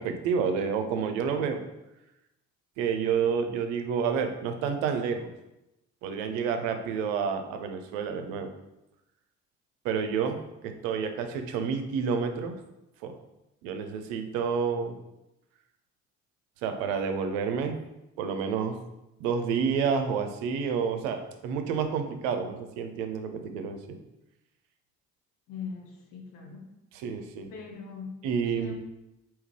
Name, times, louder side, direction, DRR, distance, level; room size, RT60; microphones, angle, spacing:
voice 1, 0.0-1.6 2.8-5.3 6.0-8.5 9.8-10.4 10.6-12.6 13.0-13.2 13.6-14.9 16.6-17.8 18.2-18.8 19.2-24.0 26.9-27.5 28.2-28.7, right 6 dB, 70° right, 7 dB, 0.6 m, -29 dB
voice 2, 25.5-26.7 27.5-28.2 28.5-28.7, left 6 dB, 60° left, 2 dB, 0.8 m, -40 dB
3.5 x 2.9 x 3.2 m, 0.92 s
figure-of-eight pair, 40°, 37 cm